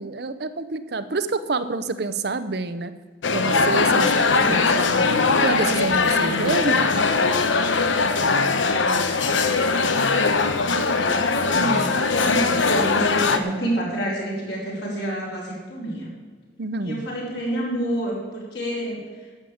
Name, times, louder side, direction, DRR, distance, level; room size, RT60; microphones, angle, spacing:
voice 1, 0.0-2.9 3.3-4.1 4.5-6.9 16.6-17.1, right 3 dB, 55° right, 11 dB, 0.7 m, -27 dB
sound 1, 3.2-13.4, left 4 dB, 80° left, 0.9 m, -20 dB
voice 2, 3.8-4.7 10.0-10.4 10.7-16.1 16.8-19.3, right 1 dB, 60° left, -4 dB, 4.5 m, -29 dB
11.0 x 7.6 x 8.5 m, 1.4 s
head